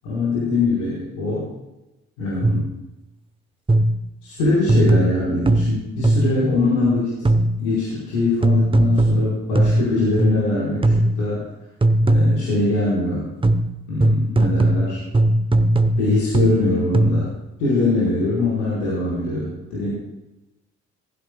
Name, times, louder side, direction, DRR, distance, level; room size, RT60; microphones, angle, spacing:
voice 1, 0.0-1.5 2.2-2.7 4.2-7.3 7.6-11.4 12.0-13.2 13.9-15.0 16.0-17.3 17.6-19.9, left 2 dB, 75° left, -8 dB, 4.5 m, -22 dB
sound 1, 2.4-2.8 3.7-4.1 4.7-6.5 7.3-7.7 8.4-10.5 10.8-11.3 11.8-12.6 13.4-17.4, right 1 dB, 15° right, 0.9 m, -19 dB
18.5 x 15.5 x 2.3 m, 0.98 s
figure-of-eight pair, 45°, 35 cm